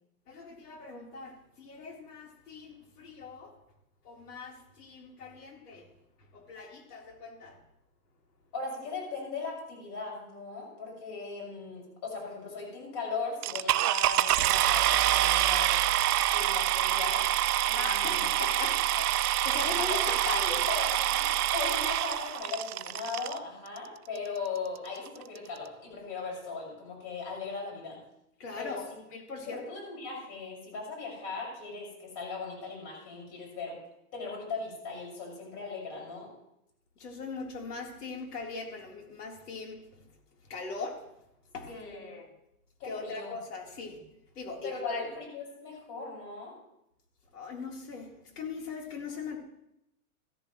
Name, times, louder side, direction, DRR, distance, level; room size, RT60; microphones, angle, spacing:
voice 1, 0.3-3.5 4.0-5.9 6.3-7.6 17.7-19.2 19.4-20.7 28.4-29.6 37.0-39.8 40.5-41.0 41.5-42.3 42.8-44.0 44.4-45.1 47.3-48.1 48.4-49.4, left 4 dB, 85° left, 0 dB, 3.9 m, -40 dB
voice 2, 8.5-15.8 16.3-17.3 17.6-18.3 19.8-20.1 20.7-21.3 21.5-28.0 28.6-28.8 29.3-33.8 34.1-36.3 41.7-42.1 42.8-43.4 44.6-46.5, left 4 dB, 35° left, -2 dB, 6.1 m, -38 dB
sound 1, 13.4-23.4 24.2-24.3 24.8-24.9 25.1-25.4, right 13 dB, 75° right, 0.8 m, -26 dB
15.0 x 14.0 x 3.2 m, 0.81 s
hypercardioid pair, 160°, 45 cm